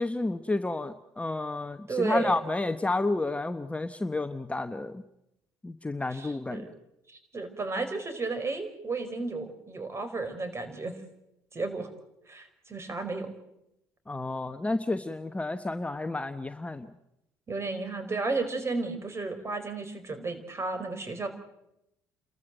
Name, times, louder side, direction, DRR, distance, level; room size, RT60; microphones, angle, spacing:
voice 1, 0.0-5.0 5.6-6.7 14.1-16.9, left 2 dB, 15° left, 9 dB, 1.1 m, -31 dB
voice 2, 1.9-2.4 6.1-6.7 7.1-10.9 11.5-11.9 12.3-13.3 17.5-21.3, right 3 dB, 30° right, 9 dB, 4.8 m, -33 dB
30.0 x 13.5 x 7.8 m, 0.85 s
hypercardioid pair, 65°, 9 cm